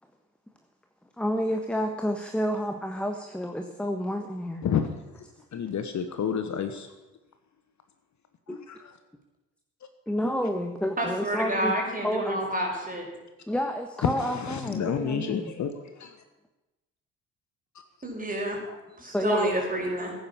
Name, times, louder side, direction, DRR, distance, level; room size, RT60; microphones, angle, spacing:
voice 1, 1.2-4.6 10.1-11.7 12.0-12.4 13.5-15.5 19.1-19.5, equal, ahead, 5 dB, 1.4 m, -29 dB
voice 2, 5.5-6.9 8.5-8.9 14.0-16.2 18.7-18.8, left 7 dB, 40° left, 8 dB, 1.4 m, -30 dB
voice 3, 11.0-13.1 18.0-18.6 19.0-20.1, right 1 dB, 20° right, 0 dB, 5.6 m, -29 dB
16.0 x 9.6 x 7.2 m, 1.1 s
figure-of-eight pair, 55°, 44 cm